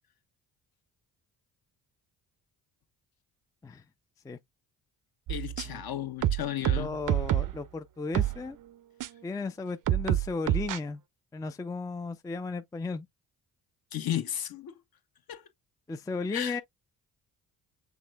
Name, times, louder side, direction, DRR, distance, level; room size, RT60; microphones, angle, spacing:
voice 1, 5.3-6.9 13.9-14.8 15.3-15.4 16.3-16.6, left 11 dB, 50° left, 1.0 m, -34 dB
sound 1, 5.3-5.8 6.2-7.6 8.1-8.4 9.0-9.1 9.9-10.8, right 12 dB, 45° right, 0.6 m, -27 dB
voice 2, 6.8-8.6 9.2-11.0 11.3-13.1 15.9-16.6, left 3 dB, 10° left, 0.4 m, -35 dB
6.2 x 3.3 x 2.2 m
hypercardioid pair, 50°, 46 cm